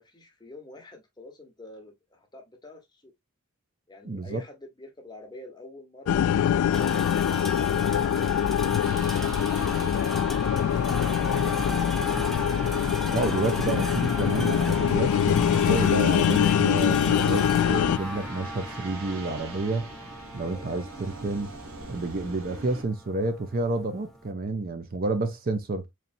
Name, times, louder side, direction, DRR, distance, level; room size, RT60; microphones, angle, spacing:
voice 1, 0.0-3.1 3.9-6.2 20.4-20.7, left 2 dB, 20° left, 1.1 m, -47 dB
voice 2, 4.0-4.4 13.1-19.9 20.3-21.5 21.9-25.8, right 2 dB, 40° right, 0.6 m, -29 dB
sound 1, 6.1-18.0, left 9 dB, 80° left, 0.3 m, -24 dB
sound 2, 6.7-24.3, left 1 dB, ahead, 0.4 m, -37 dB
sound 3, 8.8-22.8, right 2 dB, 75° right, 1.5 m, -41 dB
4.2 x 3.2 x 2.6 m
head